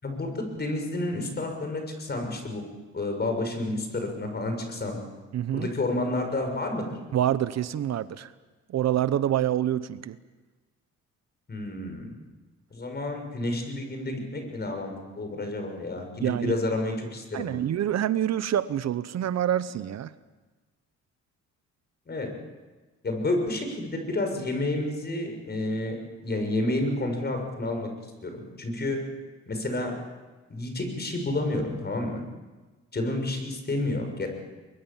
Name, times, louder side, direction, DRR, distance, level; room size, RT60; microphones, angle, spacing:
voice 1, 0.0-2.6 2.9-5.0 5.5-6.9 11.5-12.1 12.7-17.6 22.1-22.3 23.0-26.0 26.2-27.9 28.2-29.0 29.5-29.9 30.5-32.2 32.9-34.3, left 2 dB, 35° left, 4 dB, 6.5 m, -30 dB
voice 2, 5.3-5.7 7.1-8.3 8.7-10.2 16.2-16.5 17.3-20.1, right 11 dB, 60° right, 15 dB, 0.9 m, -26 dB
23.0 x 23.0 x 7.3 m, 1.3 s
cardioid pair, 90°, 30 cm